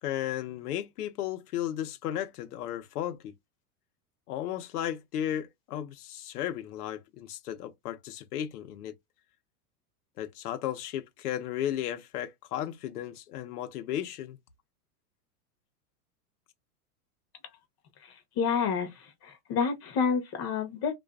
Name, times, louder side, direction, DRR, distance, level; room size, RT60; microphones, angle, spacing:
voice 1, 0.0-3.3 4.3-8.9 10.2-14.4, left 11 dB, 80° left, 0.8 m, -34 dB
voice 2, 18.4-18.9 19.2-20.9, left 6 dB, 35° left, 0.9 m, -28 dB
2.5 x 2.4 x 2.3 m
supercardioid pair, 135°, 45 cm